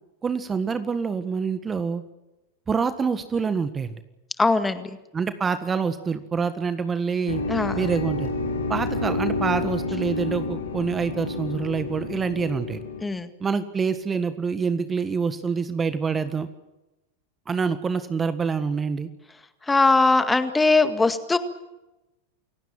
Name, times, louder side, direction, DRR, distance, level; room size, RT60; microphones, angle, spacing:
voice 1, 0.2-2.0 2.7-3.9 5.1-7.4 7.8-8.3 8.7-12.8 13.4-16.5 17.5-19.1, right 5 dB, 20° right, 11 dB, 1.6 m, -26 dB
voice 2, 4.4-4.9 7.5-7.7 13.0-13.3 19.7-21.4, left 3 dB, 10° left, 10 dB, 2.0 m, -20 dB
sound 1, 7.3-13.0, left 2 dB, 85° left, 5.6 m, -29 dB
29.0 x 17.0 x 7.6 m, 1.0 s
hypercardioid pair, 90°, 0 cm